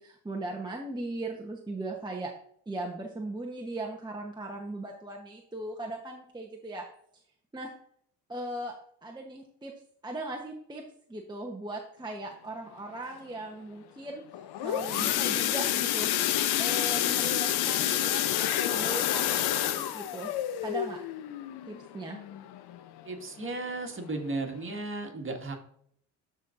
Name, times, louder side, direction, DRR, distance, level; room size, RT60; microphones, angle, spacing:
voice 1, 0.0-2.3 2.7-6.8 7.5-7.7 8.3-8.8 9.0-9.7 10.0-10.8 11.1-14.2 14.6-16.1 16.6-20.3 20.6-21.0 21.7-22.2, right 2 dB, 10° right, -1 dB, 1.0 m, -38 dB
sound 1, 14.3-23.0 23.4-23.7 24.0-24.1 24.6-24.7, left 12 dB, 70° left, 0.7 m, -29 dB
voice 2, 23.0-25.5, right 2 dB, 30° right, 2 dB, 1.8 m, -35 dB
12.5 x 4.2 x 2.5 m, 0.66 s
supercardioid pair, 65°, 40 cm